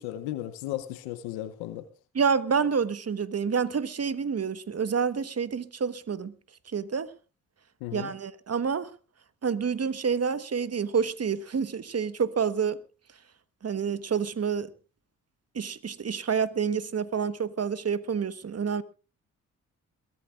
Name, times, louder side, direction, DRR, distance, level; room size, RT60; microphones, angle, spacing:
voice 1, 0.0-1.9 7.8-8.1, left 14 dB, 90° left, 0.9 m, -35 dB
voice 2, 2.1-6.3 6.7-7.1 7.9-8.9 9.4-12.8 13.6-14.7 15.5-18.8, right 6 dB, 45° right, 1.2 m, -28 dB
22.5 x 16.5 x 2.4 m
hypercardioid pair, 40°, 36 cm